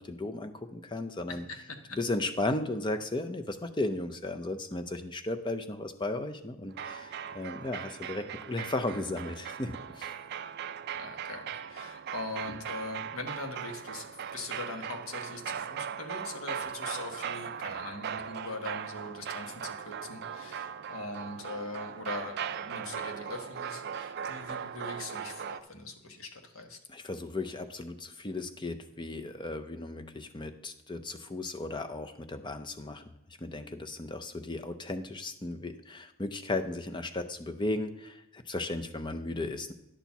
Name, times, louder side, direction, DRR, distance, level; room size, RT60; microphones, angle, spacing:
voice 1, 0.0-1.4 1.9-10.1 26.9-33.0 33.4-39.7, left 2 dB, 20° left, 7 dB, 0.5 m, -35 dB
sound 1, 6.7-25.6, right 8 dB, 45° right, 0.3 m, -39 dB
voice 2, 11.0-26.8, left 2 dB, 70° left, 5 dB, 1.2 m, -41 dB
10.0 x 4.4 x 7.0 m, 0.86 s
head